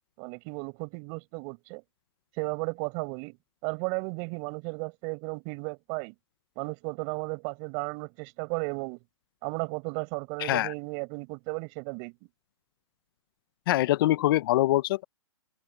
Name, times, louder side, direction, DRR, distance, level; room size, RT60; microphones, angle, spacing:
voice 1, 0.2-1.8 2.4-3.4 3.6-6.1 6.5-9.0 9.4-12.1, right 34 dB, 35° right, 6.7 m, -34 dB
voice 2, 10.4-10.7 13.7-15.0, left 15 dB, 50° left, 1.1 m, -24 dB
open air
hypercardioid pair, 145°, 16 cm